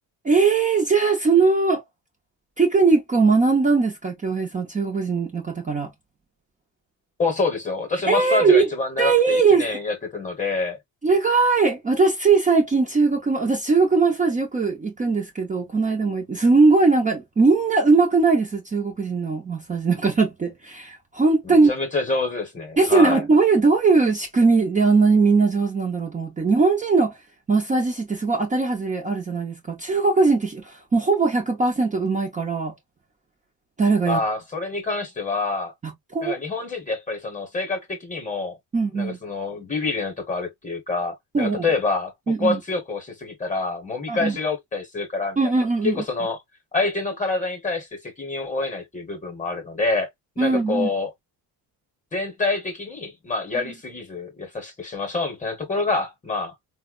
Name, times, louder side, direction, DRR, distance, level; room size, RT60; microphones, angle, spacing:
voice 1, 0.2-1.8 2.6-5.9 8.1-8.7 9.0-9.7 11.0-21.7 22.8-27.1 27.5-32.7 33.8-34.2 35.8-36.4 38.7-39.2 41.3-41.6 42.3-42.6 44.1-44.4 45.4-46.0 50.4-50.9, right 4 dB, 20° right, 0.6 m, -20 dB
voice 2, 7.2-10.8 21.4-23.2 34.1-35.7 36.2-38.6 38.9-45.4 45.8-46.4 46.7-50.1 50.4-51.1 52.1-56.5, left 3 dB, 20° left, 1.0 m, -27 dB
3.9 x 2.1 x 2.3 m
cardioid pair, 150°, 39 cm